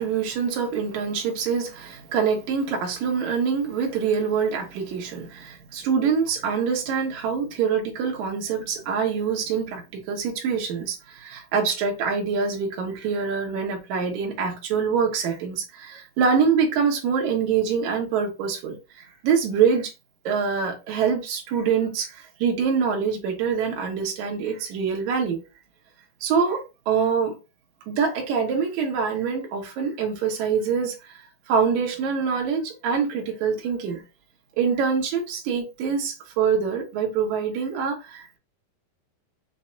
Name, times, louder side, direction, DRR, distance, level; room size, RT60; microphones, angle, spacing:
voice 1, 0.0-19.9 20.3-25.4 26.2-27.3 27.9-31.1 31.5-34.0 34.6-38.4, right 6 dB, 65° right, 2.0 m, -25 dB
6.3 x 2.7 x 2.3 m
omnidirectional pair, 4.6 m